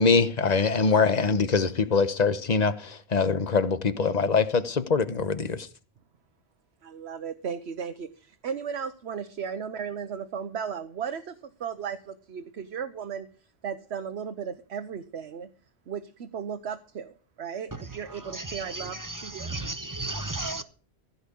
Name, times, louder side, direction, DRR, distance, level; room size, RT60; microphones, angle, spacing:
voice 1, 0.0-5.7, left 4 dB, 45° left, 1.0 m, -23 dB
voice 2, 6.8-13.3 13.6-15.5 15.9-19.5, right 7 dB, 85° right, 1.1 m, -35 dB
voice 3, 18.3-20.6, right 2 dB, 20° right, 0.8 m, -34 dB
15.5 x 5.6 x 8.3 m
omnidirectional pair, 1.1 m